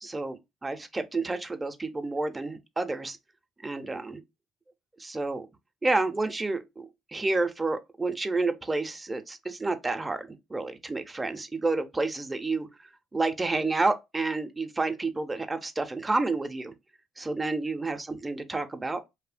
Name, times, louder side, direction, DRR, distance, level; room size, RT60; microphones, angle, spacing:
voice 1, 0.0-3.2 3.6-4.2 5.0-5.5 5.8-12.7 13.1-16.7 17.2-19.0, right 3 dB, 20° right, 0.5 m, -30 dB
2.7 x 2.0 x 2.5 m
cardioid pair, 85°, 0 cm